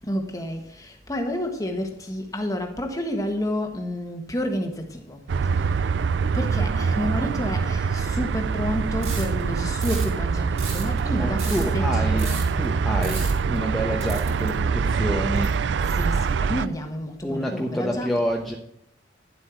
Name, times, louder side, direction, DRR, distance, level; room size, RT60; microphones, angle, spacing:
voice 1, 0.0-5.9 6.3-12.5 15.5-18.2, equal, 20° left, 1.5 m, -30 dB
sound 1, 5.3-16.7, right 5 dB, 85° right, 0.4 m, -24 dB
sound 2, 9.0-9.4 9.8-10.1 10.4-11.8 12.2-12.7 13.0-13.6 14.0-14.7 15.4-16.3, right 5 dB, 35° right, 3.4 m, -36 dB
voice 2, 11.0-12.3 12.6-15.5 17.2-18.5, equal, ahead, 1.0 m, -28 dB
11.0 x 7.7 x 4.6 m
head